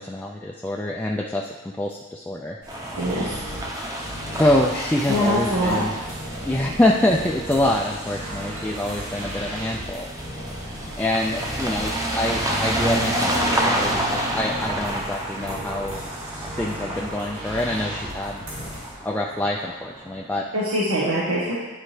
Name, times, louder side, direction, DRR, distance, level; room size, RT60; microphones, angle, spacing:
voice 1, 0.0-2.6 4.4-6.0 6.4-10.1 11.0-16.1 16.6-18.5 19.0-20.5, left 1 dB, 10° left, -2 dB, 0.3 m, -25 dB
sound 1, 2.6-18.9, equal, 70° right, 2.3 m, -36 dB
sound 2, 2.7-20.3, right 1 dB, 15° right, 0.8 m, -30 dB
voice 2, 2.9-3.4 5.1-5.8 20.5-21.5, equal, 85° right, -6 dB, 1.1 m, -23 dB
10.5 x 4.3 x 3.2 m, 1.2 s
head